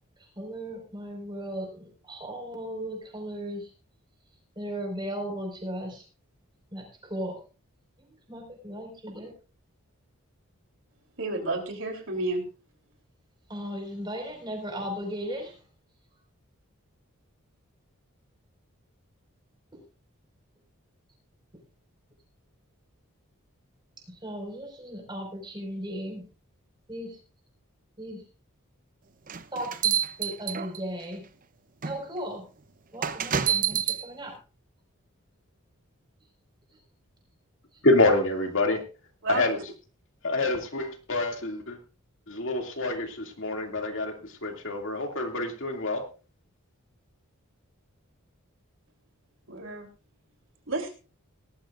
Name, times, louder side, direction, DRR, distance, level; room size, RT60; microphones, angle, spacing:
voice 1, 0.4-3.7 4.6-6.0 6.7-6.8 7.1-7.4 8.3-9.3 13.5-15.5 19.7-19.8 24.2-26.2 26.9-27.2 28.0-28.2 29.5-31.2 31.8-32.4 32.9-34.3, equal, 20° right, 3 dB, 4.9 m, -36 dB
voice 2, 11.2-12.4 39.2-39.4 49.5-49.9 50.7-50.9, right 2 dB, 60° right, 4 dB, 3.3 m, -30 dB
sound 1, 29.3-31.0 31.8-32.0 33.0-34.0, right 8 dB, 40° right, 0.7 m, -27 dB
voice 3, 37.8-38.8 39.3-39.6 40.2-41.8 42.3-46.0, left 2 dB, 60° left, 3 dB, 2.4 m, -26 dB
18.5 x 13.5 x 2.5 m, 0.34 s
head